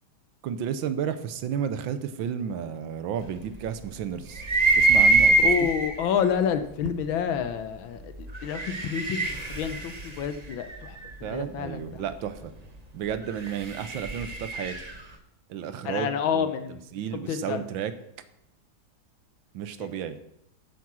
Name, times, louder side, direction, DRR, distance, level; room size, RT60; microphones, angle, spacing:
voice 1, 0.4-4.4 4.8-5.7 11.2-12.5 12.9-14.7 15.5-16.5 16.9-17.9 19.5-20.2, right 8 dB, 70° right, 12 dB, 1.5 m, -32 dB
sound 1, 4.4-6.0 6.9-7.0 8.3-11.2 13.2-15.0, right 3 dB, 35° right, 0.6 m, -23 dB
voice 2, 5.4-12.0 15.8-16.8 17.3-17.6 19.8-19.9, left 7 dB, 75° left, 10 dB, 1.6 m, -29 dB
9.2 x 7.5 x 6.1 m, 0.76 s
omnidirectional pair, 2.2 m